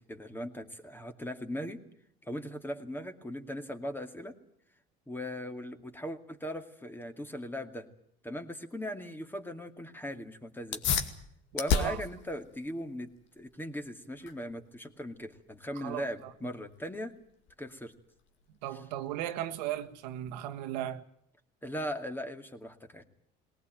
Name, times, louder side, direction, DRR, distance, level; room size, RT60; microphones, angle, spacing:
voice 1, 0.1-1.8 2.2-4.3 5.1-7.9 8.2-10.9 11.5-13.1 13.4-17.1 17.6-17.9 21.6-23.0, equal, 10° left, 2.4 m, -39 dB
sound 1, 10.6-20.7, left 6 dB, 65° left, 2.3 m, -37 dB
voice 2, 15.7-16.3 18.6-21.0, right 12 dB, 90° right, 1.5 m, -36 dB
20.0 x 18.5 x 9.1 m
supercardioid pair, 90°, 21 cm